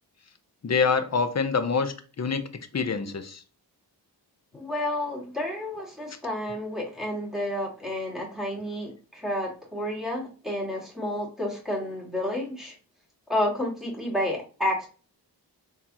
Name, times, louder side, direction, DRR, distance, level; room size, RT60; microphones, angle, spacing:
voice 1, 0.6-2.5 2.7-3.4, left 5 dB, 40° left, 9 dB, 0.6 m, -26 dB
voice 2, 4.5-12.7 13.3-14.9, left 1 dB, ahead, -3 dB, 1.9 m, -30 dB
3.8 x 2.8 x 2.9 m, 0.36 s
wide cardioid pair, 60°, 42 cm